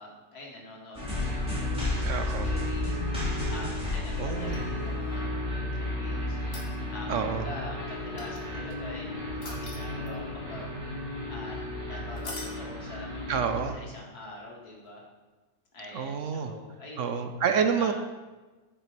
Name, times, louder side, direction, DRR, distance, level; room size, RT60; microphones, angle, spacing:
voice 1, 0.0-6.4 6.9-10.7 11.3-13.3 13.7-15.0 15.7-17.2 17.7-17.9, left 2 dB, 85° left, -2 dB, 2.6 m, -44 dB
sound 1, 0.9-13.7, left 1 dB, 5° right, 3.3 m, -32 dB
voice 2, 2.1-2.5 4.2-4.6 7.1-7.4 13.3-13.8 15.9-16.5 17.0-17.9, right 6 dB, 65° right, 8 dB, 0.9 m, -28 dB
sound 2, 4.4-5.2 6.4-7.1 8.2-8.7 9.4-10.3 12.2-12.6 14.8-14.9, left 2 dB, 45° left, 2.0 m, -43 dB
8.9 x 6.8 x 5.2 m, 1.2 s
omnidirectional pair, 1.6 m